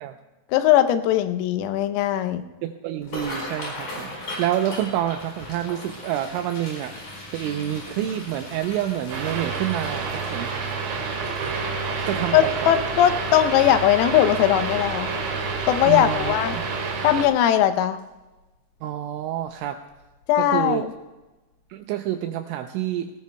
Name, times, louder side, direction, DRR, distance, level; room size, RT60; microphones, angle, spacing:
voice 1, 0.5-2.4 12.3-15.1 15.7-16.6 17.0-18.0 20.3-20.9, left 11 dB, 85° left, 9 dB, 3.5 m, -19 dB
voice 2, 2.6-4.1 4.4-6.9 7.3-10.5 12.1-12.7 15.9-16.6 18.8-19.8 20.4-20.9 21.7-23.1, right 12 dB, 85° right, 6 dB, 2.7 m, -28 dB
sound 1, 3.0-16.1 16.6-16.8 17.2-17.6 18.0-18.1 19.4-19.6 19.9-20.0 20.5-20.6, left 1 dB, 35° left, 5.5 m, -39 dB
sound 2, 9.1-17.2, right 4 dB, 70° right, 4.6 m, -28 dB
19.5 x 18.5 x 2.2 m, 1.1 s
omnidirectional pair, 6.0 m